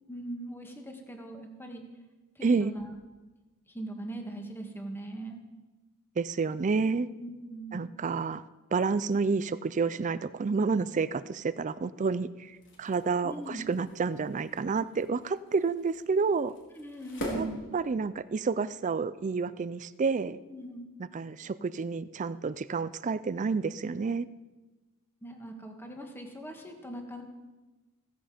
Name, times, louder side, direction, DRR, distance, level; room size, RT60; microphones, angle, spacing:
voice 1, 0.1-1.8 2.4-2.9 3.7-5.4 7.2-7.9 13.2-13.6 16.7-17.7 20.3-20.9 25.2-27.2, right 1 dB, 10° left, 3 dB, 1.9 m, -40 dB
voice 2, 2.4-2.7 6.2-7.1 7.7-8.4 8.7-12.5 12.8-16.5 17.3-17.5 17.7-20.4 21.1-24.3, right 4 dB, 35° right, 15 dB, 0.4 m, -29 dB
sound 1, 12.4-18.4, equal, 55° left, 4.3 m, -44 dB
16.0 x 15.5 x 5.1 m, 1.2 s
head